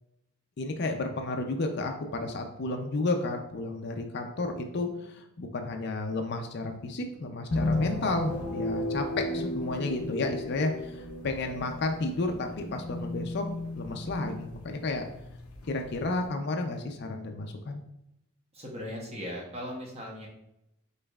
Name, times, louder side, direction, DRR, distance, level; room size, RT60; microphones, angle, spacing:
voice 1, 0.6-13.4 13.7-15.0 15.7-17.8, left 2 dB, 50° left, 4 dB, 0.4 m, -32 dB
sound 1, 7.5-16.3, left 1 dB, 90° left, 0.7 m, -34 dB
voice 2, 18.5-20.3, equal, 30° right, -2 dB, 0.9 m, -38 dB
5.3 x 4.0 x 2.3 m, 0.82 s
head